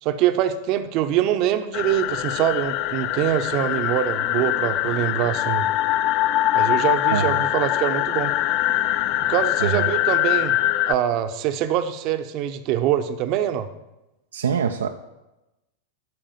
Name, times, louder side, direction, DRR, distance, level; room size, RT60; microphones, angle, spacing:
voice 1, 0.0-5.7 6.5-8.3 9.3-10.6 10.9-13.7, right 11 dB, 40° right, 9 dB, 0.8 m, -24 dB
sound 1, 1.7-10.9, left 14 dB, 40° left, 0.3 m, -23 dB
voice 2, 7.1-7.4 9.6-9.9 14.3-14.9, right 7 dB, 65° right, 5 dB, 0.5 m, -24 dB
12.0 x 4.8 x 7.3 m, 0.97 s
figure-of-eight pair, 90°, 0 cm